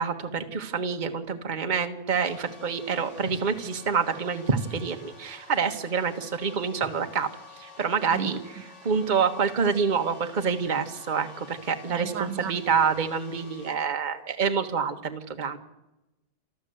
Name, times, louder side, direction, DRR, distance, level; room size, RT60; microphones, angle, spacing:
voice 1, 0.0-7.3 7.6-8.4 8.8-15.6, right 6 dB, 30° right, 6 dB, 1.4 m, -27 dB
sound 1, 2.1-13.8, left 4 dB, 70° left, 3.5 m, -50 dB
voice 2, 8.1-8.4 8.8-8.9 11.8-12.6, right 10 dB, 75° right, 9 dB, 1.6 m, -34 dB
28.5 x 12.0 x 7.9 m, 0.95 s
omnidirectional pair, 2.0 m